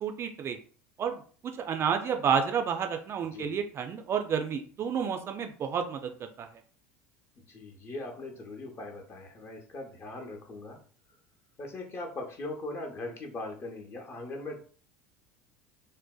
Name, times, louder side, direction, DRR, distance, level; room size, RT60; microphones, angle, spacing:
voice 1, 0.0-0.6 1.0-6.5, right 7 dB, 35° right, 6 dB, 0.3 m, -30 dB
voice 2, 7.5-10.8 11.6-14.6, left 2 dB, 35° left, 2 dB, 0.7 m, -40 dB
2.6 x 2.1 x 2.3 m, 0.43 s
hypercardioid pair, 75°, 7 cm